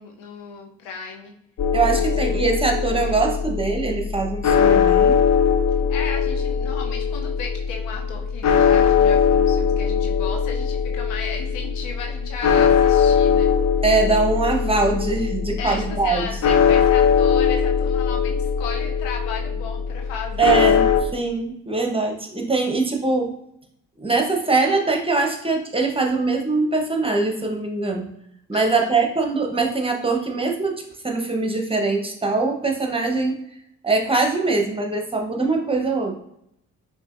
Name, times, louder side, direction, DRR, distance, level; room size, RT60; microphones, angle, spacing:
voice 1, 0.0-1.3 1.9-2.7 3.0-3.3 5.9-13.5 15.6-20.5 28.5-29.0, left 5 dB, 90° left, 2 dB, 0.8 m, -35 dB
sound 1, 1.6-21.0, left 7 dB, 45° left, 0.6 m, -20 dB
voice 2, 1.7-5.2 13.8-16.2 20.4-23.3 24.0-28.1 28.5-33.3 33.8-36.1, right 3 dB, 15° right, 1 dB, 1.0 m, -22 dB
5.4 x 2.9 x 2.6 m, 0.75 s
hypercardioid pair, 55°, 36 cm